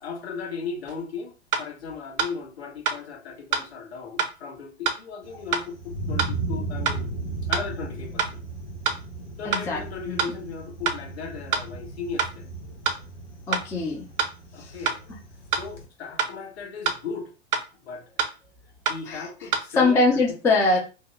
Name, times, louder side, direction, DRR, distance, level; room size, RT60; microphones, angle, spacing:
voice 1, 0.0-1.3 1.6-7.1 7.4-8.4 9.4-12.5 14.5-15.0 15.5-17.3 17.8-18.3 18.9-20.2, left 5 dB, 65° left, 1.3 m, -36 dB
sound 1, 0.9-1.0 1.5-1.7 2.2-2.3 2.8-3.0 3.5-3.7 4.2-4.3 4.8-5.0 5.5-5.7 6.2-6.3 6.8-7.0 7.5-7.7 8.2-8.3 8.8-9.0 9.5-9.7 10.2-10.3 10.8-11.0 11.5-11.7 12.2-12.3 12.8-13.0 13.5-13.7 14.2-14.3 14.8-15.0 15.5-15.7 16.2-16.3 16.8-17.0 17.5-17.7 18.2-18.3 18.8-19.0 19.5-19.6, right 6 dB, 35° right, 0.6 m, -25 dB
Thunder, 5.2-15.9, right 3 dB, 85° left, 1.0 m, -36 dB
voice 2, 9.4-9.8 10.1-10.3 13.5-14.1 14.6-14.7 19.1-19.5 19.8-20.8, left 3 dB, 10° left, 0.4 m, -23 dB
2.7 x 2.1 x 3.6 m
figure-of-eight pair, 100°, 34 cm